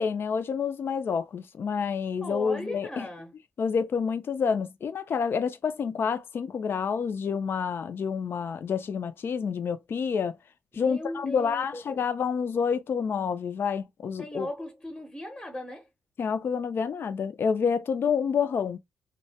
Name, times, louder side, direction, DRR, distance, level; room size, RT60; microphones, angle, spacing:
voice 1, 0.0-3.1 3.6-10.4 10.7-14.5 16.2-18.8, left 6 dB, 55° left, 0.3 m, -28 dB
voice 2, 2.2-3.3 10.7-12.0 14.2-15.9, left 1 dB, 15° left, 0.7 m, -37 dB
2.1 x 2.1 x 2.7 m
cardioid pair, 65°, 5 cm